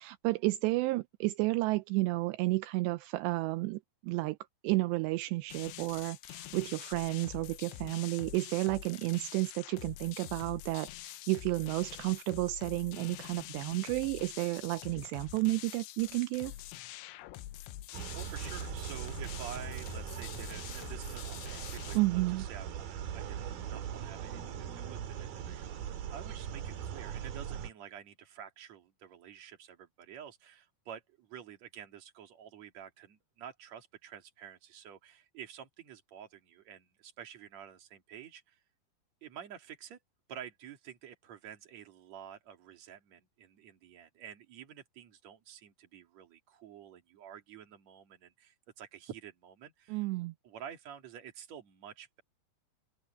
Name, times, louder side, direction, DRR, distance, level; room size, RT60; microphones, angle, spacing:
voice 1, 0.0-4.4 4.6-16.5 22.0-22.5 49.9-50.3, right 21 dB, 85° right, 2.6 m, -32 dB
sound 1, 5.5-22.0, left 15 dB, 85° left, 3.1 m, -46 dB
voice 2, 17.9-38.6 39.2-40.0 40.3-50.1 50.4-52.2, right 9 dB, 45° right, 3.0 m, -49 dB
sound 2, 17.9-27.7, right 9 dB, 60° right, 3.1 m, -40 dB
omnidirectional pair, 5.3 m